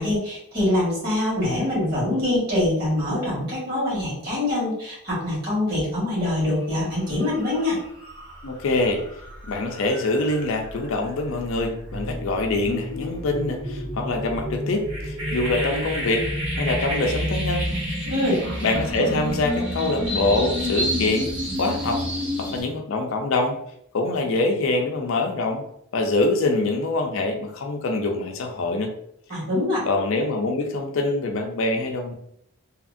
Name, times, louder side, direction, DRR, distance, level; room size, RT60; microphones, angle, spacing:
voice 1, 0.0-7.8 18.0-18.4 29.3-29.8, left 1 dB, 45° right, -7 dB, 1.5 m, -24 dB
sound 1, 6.6-6.8 7.1-22.6, equal, 80° right, 1.2 m, -30 dB
voice 2, 8.4-9.0 9.5-16.3 16.5-17.7 18.6-21.3 21.6-22.0 22.4-23.6 23.9-25.6 25.9-28.9 29.9-32.1, left 2 dB, 65° left, 3 dB, 0.4 m, -24 dB
2.8 x 2.5 x 2.5 m, 0.71 s
head